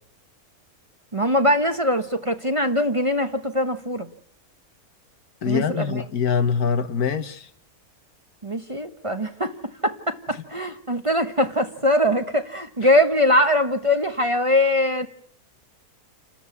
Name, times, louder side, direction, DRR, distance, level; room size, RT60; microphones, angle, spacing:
voice 1, 1.1-4.1 5.5-6.0 8.4-9.5 9.8-15.1, left 1 dB, 25° right, 1.0 m, -22 dB
voice 2, 5.4-7.5, left 6 dB, 85° left, 1.7 m, -23 dB
28.5 x 13.5 x 8.4 m
omnidirectional pair, 1.6 m